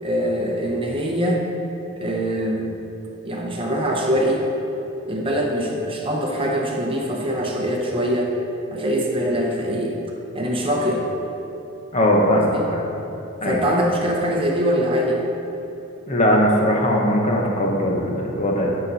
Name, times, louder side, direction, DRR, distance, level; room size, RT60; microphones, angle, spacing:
voice 1, 0.0-1.4 2.0-2.7 3.2-4.4 5.1-8.3 8.7-10.0 10.3-11.0 12.2-12.7 13.4-15.2, equal, 25° right, -1 dB, 0.8 m, -23 dB
voice 2, 11.9-12.8 13.4-13.6 16.1-18.8, equal, 30° left, -1 dB, 0.9 m, -19 dB
9.6 x 5.9 x 4.1 m, 3.0 s
head